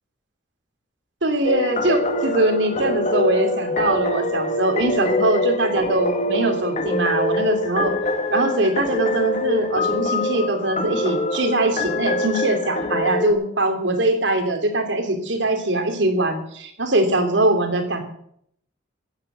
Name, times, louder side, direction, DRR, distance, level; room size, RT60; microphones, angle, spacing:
voice 1, 1.2-7.9 8.3-18.0, right 2 dB, 80° right, 5 dB, 2.9 m, -22 dB
sound 1, 1.4-13.3, left 1 dB, 40° left, 1.5 m, -24 dB
15.0 x 8.7 x 8.0 m, 0.69 s
head